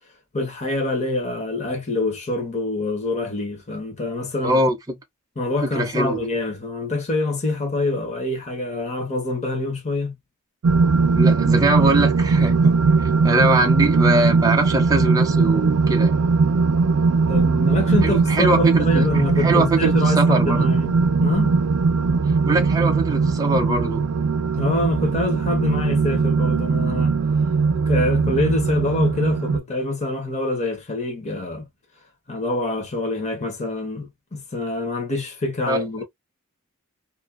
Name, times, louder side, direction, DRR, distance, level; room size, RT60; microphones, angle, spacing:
voice 1, 0.3-4.6 5.4-10.1 17.3-20.9 21.2-21.5 24.5-27.2 27.9-31.7 32.3-36.0, left 2 dB, 30° left, 0.8 m, -25 dB
voice 2, 4.4-4.8 5.6-6.2 11.1-12.8 13.0-16.1 18.0-19.1 19.4-20.7 22.4-24.0 35.7-35.8, right 2 dB, 15° right, 0.5 m, -22 dB
sound 1, 10.6-29.6, right 4 dB, 85° right, 0.4 m, -19 dB
2.5 x 2.2 x 2.4 m
head